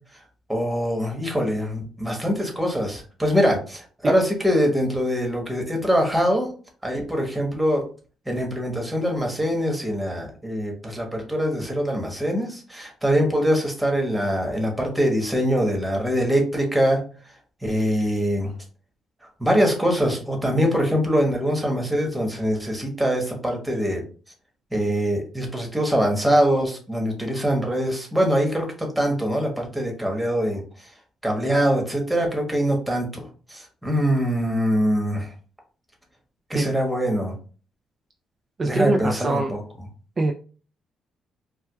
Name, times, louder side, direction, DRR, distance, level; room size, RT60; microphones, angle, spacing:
voice 1, 0.5-6.5 6.8-7.8 8.3-17.0 17.6-18.5 19.4-24.0 24.7-30.9 31.2-35.3 36.5-37.3 38.6-39.6, equal, 5° right, 1 dB, 1.2 m, -23 dB
voice 2, 38.6-39.5 40.2-40.3, right 2 dB, 35° right, 4 dB, 0.3 m, -22 dB
4.5 x 2.2 x 2.3 m, 0.38 s
cardioid pair, 90°, 0 cm